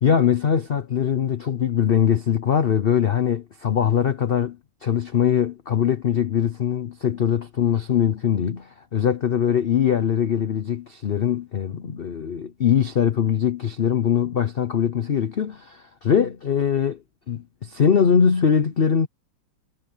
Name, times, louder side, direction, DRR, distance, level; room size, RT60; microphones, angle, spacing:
voice 1, 0.0-4.6 4.8-17.0 17.3-19.1, left 8 dB, 75° left, 0.5 m, -22 dB
omnidirectional pair, 2.0 m